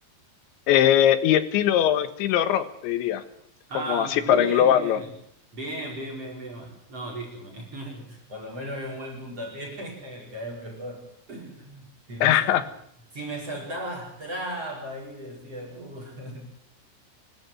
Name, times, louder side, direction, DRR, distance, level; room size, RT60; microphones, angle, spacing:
voice 1, 0.7-3.2 3.9-5.0 12.2-12.6, left 11 dB, 75° left, 12 dB, 3.6 m, -21 dB
voice 2, 3.7-5.1 5.5-12.4 13.1-16.5, right 1 dB, 30° right, -1 dB, 5.6 m, -36 dB
25.0 x 14.5 x 9.3 m, 0.68 s
omnidirectional pair, 5.5 m